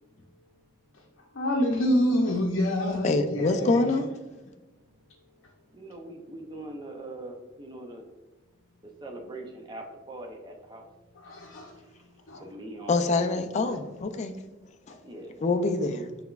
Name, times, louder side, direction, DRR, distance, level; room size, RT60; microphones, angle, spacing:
voice 1, 1.3-4.0 11.2-11.7 12.3-12.4, left 1 dB, 70° left, 0.6 m, -27 dB
voice 2, 3.0-4.1 12.9-14.4 14.9-15.0 15.4-16.1, left 3 dB, 35° left, 0.3 m, -25 dB
voice 3, 5.7-8.0 9.0-10.8 12.0-12.1 12.4-13.4 15.0-15.5, right 1 dB, 20° right, 0.5 m, -42 dB
5.8 x 3.4 x 2.3 m
head